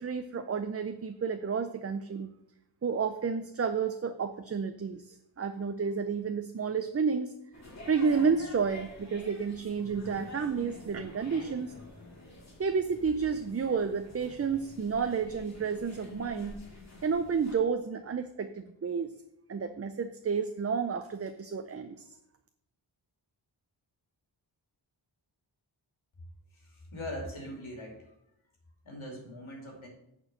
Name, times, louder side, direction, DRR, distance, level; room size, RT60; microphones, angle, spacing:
voice 1, 0.0-2.3 2.8-7.3 7.9-11.7 12.6-16.6 17.0-19.1 19.5-22.0, right 5 dB, 30° right, 8 dB, 0.5 m, -31 dB
sound 1, 7.5-17.6, left 2 dB, 35° left, 2.1 m, -48 dB
voice 2, 26.6-28.0 28.8-29.9, left 1 dB, 85° left, 1 dB, 2.7 m, -41 dB
8.5 x 4.5 x 6.5 m, 0.81 s
wide cardioid pair, 110°, 47 cm